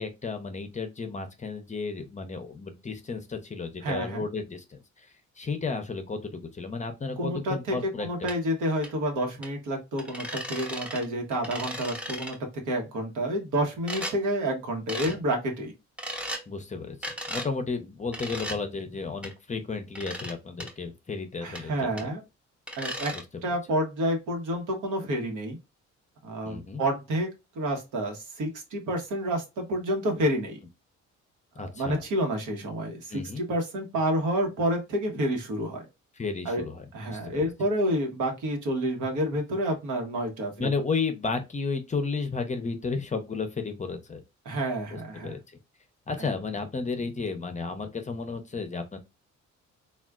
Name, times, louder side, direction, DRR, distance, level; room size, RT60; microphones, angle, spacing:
voice 1, 0.0-8.3 15.0-15.2 16.5-22.1 23.1-23.2 26.5-26.8 31.6-32.0 33.1-33.4 36.2-37.5 40.6-44.2 44.9-45.4 46.1-49.0, left 4 dB, 25° left, 0.6 m, -33 dB
voice 2, 3.8-4.2 7.2-12.4 12.7-15.7 21.4-22.2 22.8-23.1 23.4-25.6 26.2-27.3 27.5-30.6 31.6-35.9 36.4-36.6 36.9-40.7 44.4-45.4, right 1 dB, 80° right, 1.1 m, -29 dB
sound 1, 8.3-8.4 8.8-8.9 9.4-9.5 10.0-11.1 11.3-12.4 13.9-14.2 14.9-15.2 16.0-16.4 17.0-17.5 18.1-18.6 19.2-19.3 20.0-20.3 20.6-20.7 21.6-21.7 22.0-22.1 22.7-23.2, equal, 5° right, 0.8 m, -35 dB
3.4 x 2.3 x 2.3 m
cardioid pair, 90°, 30 cm